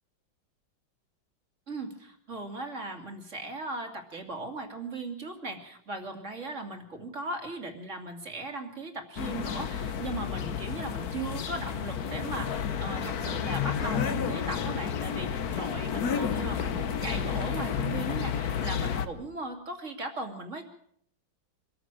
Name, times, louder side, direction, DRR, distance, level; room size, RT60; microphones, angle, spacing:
voice 1, 1.7-20.7, right 2 dB, 40° right, 5 dB, 2.9 m, -38 dB
sound 1, 9.2-19.1, left 7 dB, 55° left, 1.5 m, -31 dB
24.5 x 14.0 x 7.6 m, 0.66 s
omnidirectional pair, 2.0 m